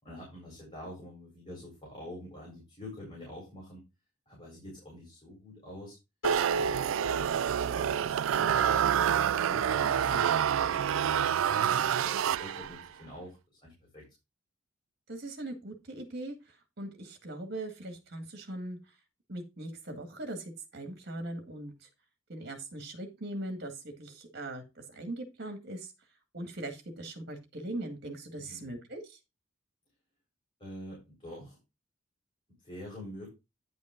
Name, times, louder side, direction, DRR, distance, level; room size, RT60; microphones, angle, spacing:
voice 1, 0.0-3.8 4.3-6.0 6.6-7.2 7.6-14.1 28.4-28.8 30.6-31.6 32.6-33.3, left 1 dB, 25° left, -3 dB, 4.4 m, -46 dB
Piano, 6.2-9.5, right 2 dB, 85° left, 2.6 m, -38 dB
sound 1, 6.2-12.9, right 9 dB, 80° right, 0.3 m, -27 dB
voice 2, 15.1-16.4 16.8-18.8 19.3-21.7 22.3-25.9 26.3-29.0, right 1 dB, 55° right, 6 dB, 2.0 m, -40 dB
9.8 x 5.3 x 3.8 m, 0.24 s
head